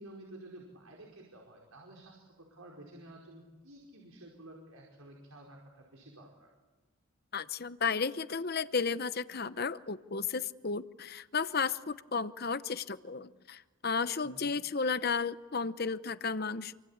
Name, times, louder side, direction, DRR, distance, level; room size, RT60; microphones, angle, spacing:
voice 1, 0.0-6.5 14.2-14.5, right 1 dB, 85° right, 0 dB, 5.1 m, -52 dB
voice 2, 7.3-16.8, left 5 dB, 45° left, 13 dB, 0.8 m, -33 dB
28.0 x 24.5 x 8.8 m, 1.3 s
head